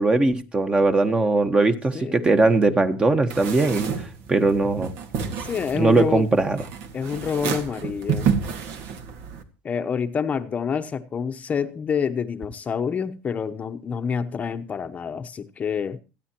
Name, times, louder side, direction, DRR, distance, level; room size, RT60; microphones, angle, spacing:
voice 1, 0.0-3.9 4.3-4.9 5.7-6.6, right 3 dB, 20° right, 1.4 m, -20 dB
voice 2, 1.9-2.4 5.2-6.3 6.9-8.4 9.6-16.0, left 6 dB, 30° left, 0.9 m, -28 dB
sound 1, 3.3-9.4, right 7 dB, 65° right, 2.0 m, -30 dB
27.0 x 9.2 x 2.9 m
supercardioid pair, 120°, 5 cm